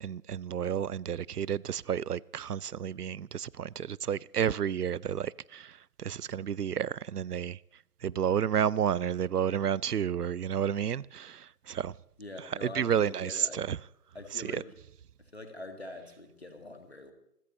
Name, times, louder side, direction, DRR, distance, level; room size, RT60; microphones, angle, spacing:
voice 1, 0.0-5.7 6.0-7.6 8.0-11.9 12.6-13.8 14.4-14.5, right 8 dB, 75° right, 0.5 m, -31 dB
voice 2, 12.2-13.6 14.1-14.7 15.2-17.1, left 2 dB, 40° left, 2.0 m, -44 dB
28.0 x 14.0 x 3.1 m
figure-of-eight pair, 180°, 48 cm